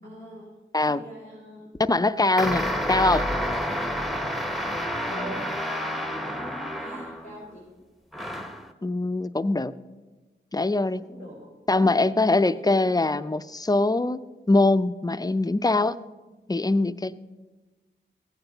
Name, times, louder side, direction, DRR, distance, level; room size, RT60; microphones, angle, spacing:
voice 1, 0.0-0.5 0.8-1.7 2.6-2.7 5.1-7.7 11.0-11.9 12.4-13.0, right 1 dB, 50° right, -6 dB, 3.8 m, -43 dB
voice 2, 1.9-3.3 8.8-9.7 10.5-11.0 11.7-14.2 14.5-16.0 16.5-17.2, left 2 dB, 20° left, 12 dB, 0.5 m, -22 dB
sound 1, 2.4-7.4 8.1-8.7, equal, ahead, 0.9 m, -29 dB
16.0 x 9.1 x 3.9 m, 1.2 s
cardioid pair, 55°, 20 cm